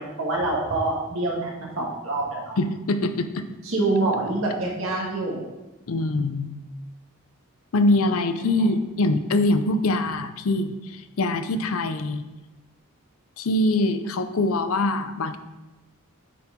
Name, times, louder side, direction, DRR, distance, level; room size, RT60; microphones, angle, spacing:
voice 1, 0.0-2.6 3.6-5.4 8.6-8.7, right 2 dB, 65° right, -2 dB, 1.7 m, -26 dB
voice 2, 2.6-3.5 5.9-6.5 7.7-12.2 13.4-15.4, left 2 dB, 70° left, 10 dB, 0.5 m, -23 dB
9.1 x 4.5 x 3.7 m, 1.0 s
head